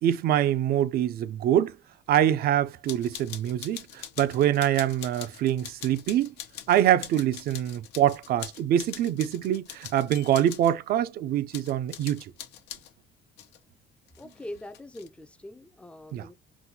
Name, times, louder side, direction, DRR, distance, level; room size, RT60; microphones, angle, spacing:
voice 1, 0.0-1.8 2.1-6.3 6.7-12.3 16.1-16.3, right 11 dB, 65° right, 0.5 m, -25 dB
sound 1, 2.8-10.7 11.5-12.9 13.4-13.6 14.1-15.1, left 11 dB, 85° left, 0.9 m, -43 dB
voice 2, 14.2-16.4, left 1 dB, 5° left, 0.4 m, -42 dB
4.0 x 2.2 x 2.7 m
cardioid pair, 110°, 17 cm